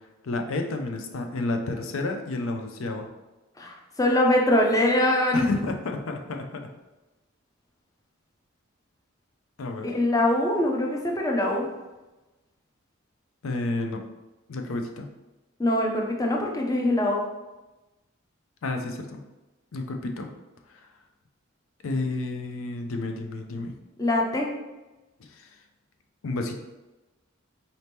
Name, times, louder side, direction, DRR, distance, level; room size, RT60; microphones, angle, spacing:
voice 1, 0.2-3.1 5.3-6.7 9.6-10.0 13.4-14.0 14.5-15.1 18.6-19.2 19.7-20.3 20.7-20.9 21.8-23.7 25.2-25.5 26.2-26.5, left 2 dB, 75° left, 4 dB, 0.5 m, -31 dB
voice 2, 3.6-5.4 9.8-11.7 15.6-17.2 24.0-24.5, left 1 dB, 15° left, 0 dB, 0.5 m, -23 dB
4.1 x 2.8 x 3.4 m, 1.1 s
head